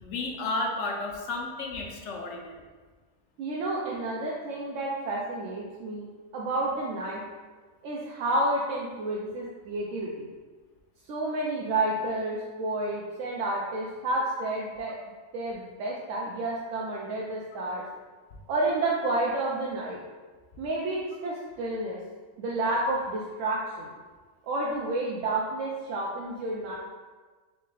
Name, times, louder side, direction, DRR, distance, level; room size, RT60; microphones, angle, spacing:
voice 1, 0.0-2.6, left 2 dB, 75° left, 1 dB, 1.0 m, -32 dB
voice 2, 3.4-6.1 6.3-7.2 7.8-10.3 11.1-15.0 15.3-17.8 18.5-20.0 20.6-22.0 22.4-23.9 24.4-26.8, right 2 dB, 90° right, -4 dB, 0.9 m, -30 dB
3.5 x 3.1 x 3.8 m, 1.4 s
omnidirectional pair, 1.3 m